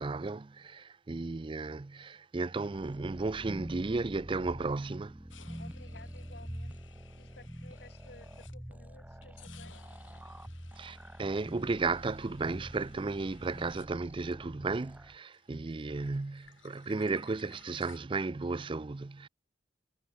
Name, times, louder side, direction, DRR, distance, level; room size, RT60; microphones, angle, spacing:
voice 1, 0.0-5.2 10.8-19.3, right 3 dB, 25° right, 0.4 m, -34 dB
sound 1, 2.7-15.2, equal, 10° right, 1.0 m, -46 dB
sound 2, 5.3-8.8 9.2-14.8 15.0-18.0, left 7 dB, 80° left, 5.1 m, -59 dB
voice 2, 5.6-9.8, left 2 dB, 55° left, 7.1 m, -56 dB
head